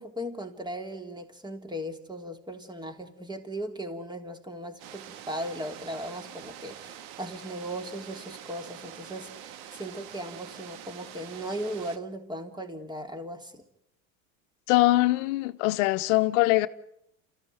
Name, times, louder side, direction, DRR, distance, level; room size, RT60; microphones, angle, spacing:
voice 1, 0.0-13.6, equal, 10° right, 3.4 m, -37 dB
sound 1, 4.8-12.0, right 10 dB, 65° right, 2.0 m, -45 dB
voice 2, 14.7-16.7, left 18 dB, 70° left, 1.3 m, -22 dB
28.5 x 15.0 x 9.4 m
hypercardioid pair, 90°, 40 cm